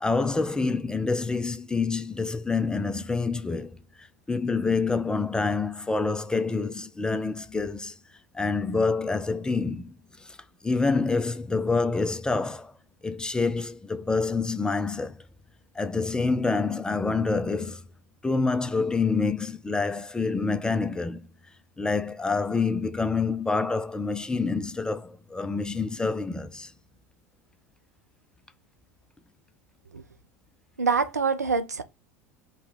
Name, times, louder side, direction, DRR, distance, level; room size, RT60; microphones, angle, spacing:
voice 1, 0.0-7.9 8.3-9.9 10.2-10.4 10.6-12.7 13.0-15.2 15.8-17.8 18.2-21.2 21.8-26.7, left 4 dB, 10° left, 0.4 m, -27 dB
voice 2, 30.8-31.8, right 5 dB, 85° right, 0.5 m, -25 dB
5.4 x 2.2 x 4.0 m
figure-of-eight pair, 80°, 8 cm